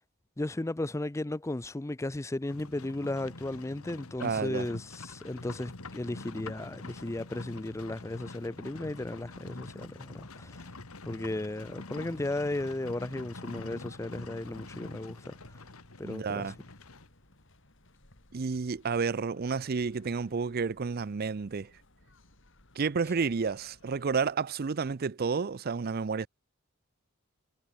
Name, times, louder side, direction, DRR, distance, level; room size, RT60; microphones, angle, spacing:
voice 1, 0.4-10.7 11.0-15.6 16.0-16.5, left 2 dB, 15° left, 0.4 m, -35 dB
Livestock farm animals working animals, 2.5-17.1, left 2 dB, 90° left, 2.0 m, -46 dB
voice 2, 4.2-4.7 16.0-16.6 18.3-21.7 22.8-26.3, right 5 dB, 45° right, 0.5 m, -31 dB
sound 1, 4.6-24.3, left 2 dB, 60° left, 5.2 m, -62 dB
head